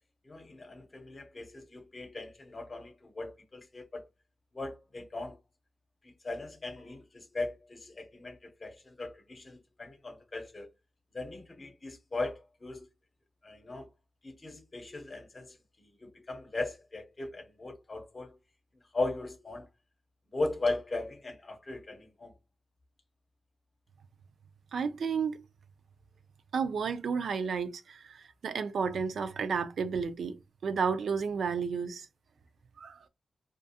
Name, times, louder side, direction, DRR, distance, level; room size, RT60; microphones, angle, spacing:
voice 1, 0.2-4.1 4.5-5.4 6.0-10.7 11.1-12.9 13.4-13.9 14.2-18.4 18.9-19.7 20.3-22.3, left 2 dB, 35° left, 0.7 m, -38 dB
voice 2, 24.7-25.4 26.5-30.4 30.6-32.1 32.8-33.0, right 5 dB, 80° right, 0.3 m, -32 dB
2.4 x 2.3 x 2.7 m
wide cardioid pair, 95°, 0 cm